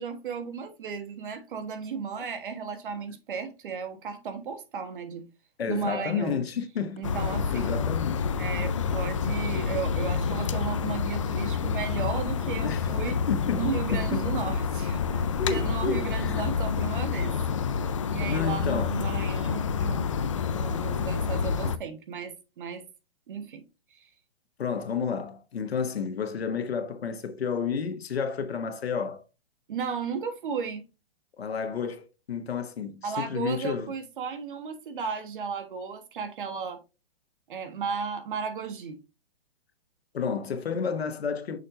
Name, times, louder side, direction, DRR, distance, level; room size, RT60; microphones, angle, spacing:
voice 1, 0.0-5.3 5.7-6.4 7.0-7.8 8.4-13.2 13.5-17.3 18.1-20.1 20.5-22.8 23.3-23.6 23.9-24.1 29.7-30.8 33.0-36.8 37.5-39.0, right 6 dB, 55° right, 1.3 m, -34 dB
voice 2, 5.6-7.1 7.5-8.3 12.6-14.4 15.4-16.4 18.2-18.9 24.6-29.2 31.4-33.9 40.1-41.6, left 6 dB, 90° left, 1.4 m, -31 dB
sound 1, 7.0-21.8, left 6 dB, 35° left, 0.4 m, -28 dB
6.5 x 5.7 x 2.6 m
hypercardioid pair, 165°, 30 cm